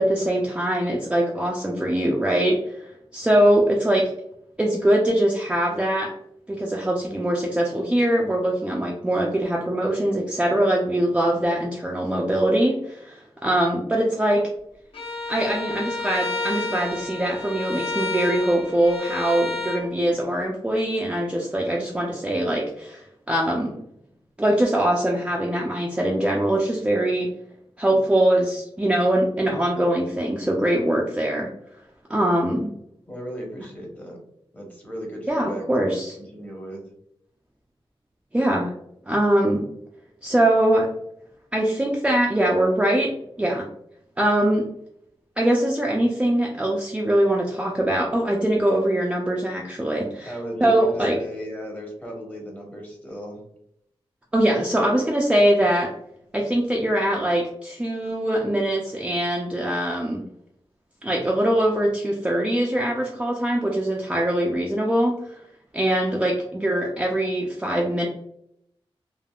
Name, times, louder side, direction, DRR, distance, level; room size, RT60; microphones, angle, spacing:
voice 1, 0.0-4.1 4.6-6.1 6.5-14.5 15.3-23.8 24.4-27.3 27.8-31.5 32.1-32.7 35.3-36.2 38.3-38.7 39.1-39.6 40.2-40.9 41.5-43.1 43.4-43.7 44.2-44.7 45.4-50.3 50.6-51.2 54.3-55.9 56.3-60.2 61.0-65.4 65.7-68.1, right 1 dB, 10° right, -2 dB, 0.4 m, -22 dB
Bowed string instrument, 14.9-19.8, left 2 dB, 70° left, 0.8 m, -30 dB
voice 2, 33.1-34.2 34.5-36.8 45.9-46.0 50.2-53.4 67.0-67.3, equal, 15° left, -1 dB, 1.0 m, -36 dB
3.4 x 2.4 x 2.3 m, 0.74 s
wide cardioid pair, 100°, 10 cm